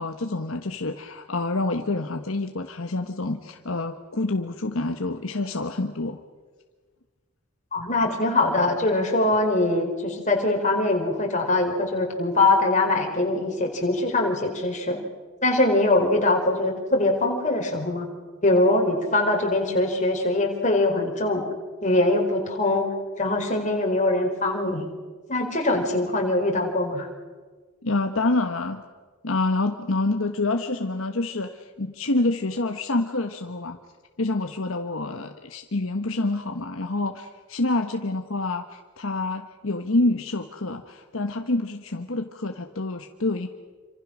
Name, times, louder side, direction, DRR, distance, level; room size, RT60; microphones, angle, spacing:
voice 1, 0.0-6.2 27.8-28.8 29.2-33.8 34.2-43.5, left 2 dB, 65° left, 5 dB, 1.3 m, -27 dB
voice 2, 7.7-15.0 15.4-18.1 18.4-21.4 21.8-22.9 23.2-24.9 25.3-27.1, left 2 dB, 35° left, 1 dB, 4.7 m, -22 dB
27.5 x 26.5 x 6.3 m, 1.4 s
head